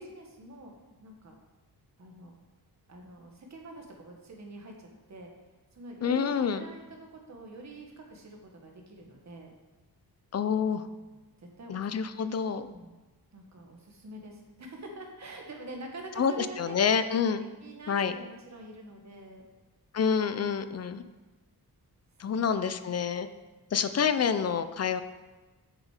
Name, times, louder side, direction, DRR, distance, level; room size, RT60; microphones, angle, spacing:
voice 1, 0.0-1.3 2.0-2.3 2.9-5.3 5.7-9.5 11.0-11.9 12.5-12.9 13.3-16.8 17.6-19.4 20.3-20.4 22.2-22.5, right 2 dB, 45° right, 1 dB, 1.4 m, -46 dB
voice 2, 6.0-6.6 10.3-10.9 11.7-12.7 16.2-17.5 17.9-18.1 19.9-21.0 22.2-23.3 23.7-25.0, left 6 dB, 45° left, 11 dB, 0.4 m, -27 dB
7.6 x 6.4 x 4.8 m, 1.2 s
wide cardioid pair, 165°, 38 cm